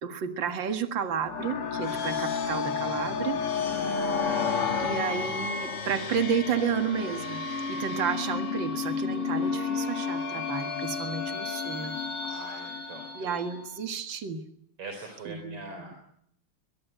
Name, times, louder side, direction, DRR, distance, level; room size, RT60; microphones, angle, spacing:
voice 1, 0.0-3.4 4.8-11.9 12.3-12.4 13.1-14.4 15.3-15.6, right 7 dB, 60° right, 7 dB, 2.5 m, -31 dB
sound 1, 1.2-13.7, left 5 dB, 80° left, 3.5 m, -31 dB
voice 2, 3.5-4.0 12.2-13.4 14.8-15.9, right 3 dB, 80° right, 4 dB, 5.2 m, -43 dB
23.5 x 22.0 x 9.2 m, 0.73 s
omnidirectional pair, 2.4 m